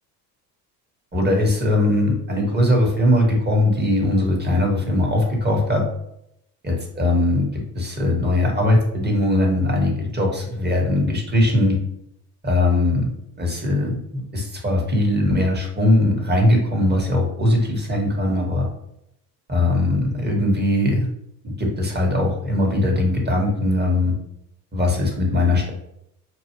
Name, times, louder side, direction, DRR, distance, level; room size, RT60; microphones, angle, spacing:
voice 1, 1.1-5.8 6.6-7.5 7.7-11.8 12.4-18.7 19.5-21.1 21.4-24.1 24.7-25.7, left 1 dB, 20° right, 0 dB, 1.7 m, -20 dB
5.9 x 2.5 x 3.1 m, 0.78 s
hypercardioid pair, 65°, 48 cm